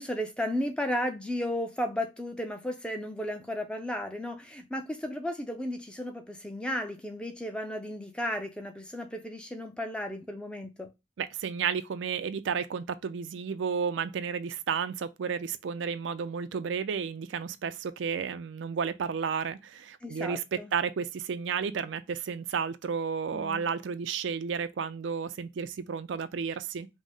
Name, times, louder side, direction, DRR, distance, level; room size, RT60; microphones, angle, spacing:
voice 1, 0.0-10.9 20.0-20.7 23.3-23.7, equal, 5° left, 0.5 m, -34 dB
voice 2, 11.2-26.9, right 6 dB, 75° right, 0.4 m, -32 dB
5.2 x 2.0 x 3.4 m
head